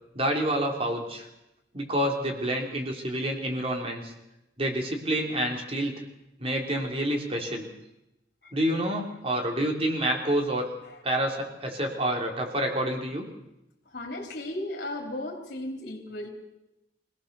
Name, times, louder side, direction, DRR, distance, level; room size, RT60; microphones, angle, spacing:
voice 1, 0.1-1.3 1.7-4.1 4.6-6.0 6.4-7.7 8.5-10.7 11.0-13.3, right 1 dB, 35° right, 2 dB, 3.6 m, -28 dB
voice 2, 13.9-16.3, left 1 dB, 65° left, 0 dB, 3.8 m, -35 dB
24.5 x 17.5 x 7.0 m, 0.90 s
head